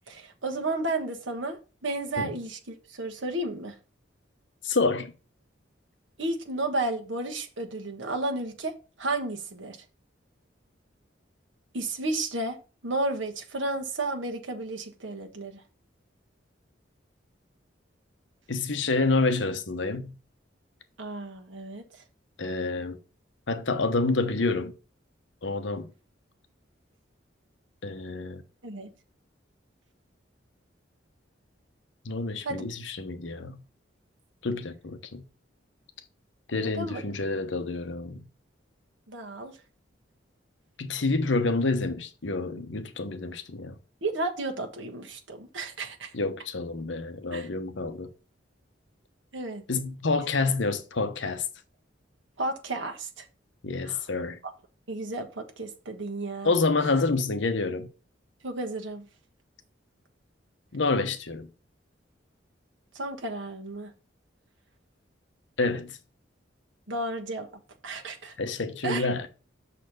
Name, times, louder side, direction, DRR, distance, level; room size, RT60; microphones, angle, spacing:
voice 1, 0.1-1.6 1.8-3.8 6.2-8.7 9.0-9.8 11.7-12.6 12.8-15.6 21.0-21.8 28.6-28.9 32.4-32.7 36.5-37.0 39.1-39.6 44.0-46.1 47.3-47.5 49.3-49.6 52.4-53.2 53.8-54.0 54.4-54.5 54.9-56.5 58.4-59.0 62.9-63.9 66.9-67.5 67.8-68.3 68.8-69.1, right 2 dB, 85° right, 1.3 m, -32 dB
voice 2, 4.6-5.1 18.5-20.1 22.4-23.0 23.5-24.7 25.4-25.9 27.8-28.4 32.0-33.6 34.4-35.2 36.5-38.2 40.8-43.7 46.1-48.1 49.7-51.5 53.6-54.4 56.4-57.9 60.7-61.5 65.6-66.0 68.4-69.3, left 3 dB, 75° left, 1.0 m, -28 dB
6.6 x 4.2 x 6.6 m
head